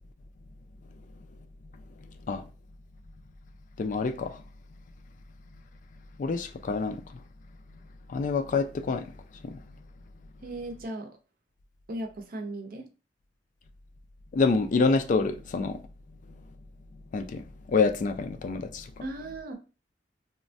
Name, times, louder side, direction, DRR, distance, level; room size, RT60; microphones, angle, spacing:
voice 1, 3.8-4.4 6.2-7.0 8.1-9.0 9.4-9.6 14.3-15.8 17.1-18.9, left 4 dB, 45° left, 0.3 m, -27 dB
voice 2, 10.4-11.1 11.9-12.9 19.0-19.5, right 1 dB, 55° right, 0.5 m, -36 dB
3.0 x 2.1 x 2.6 m
head